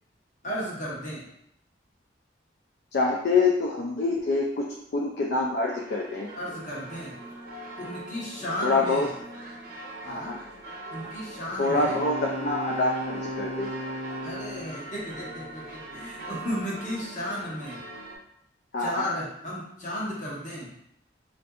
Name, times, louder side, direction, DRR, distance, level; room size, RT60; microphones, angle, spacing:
voice 1, 0.4-1.2 6.3-7.2 7.8-9.1 10.0-10.4 10.9-12.0 14.2-17.8 18.8-20.7, equal, 45° left, -5 dB, 0.9 m, -34 dB
voice 2, 2.9-4.7 4.9-6.3 8.6-9.1 10.1-10.4 11.6-13.7 18.7-19.0, left 3 dB, 60° left, -1 dB, 0.3 m, -25 dB
sound 1, 5.6-18.2, right 1 dB, 50° right, 0.7 m, -42 dB
Wind instrument woodwind instrument, 11.7-14.8, equal, 15° right, 0.6 m, -35 dB
3.5 x 2.5 x 2.3 m, 0.76 s
head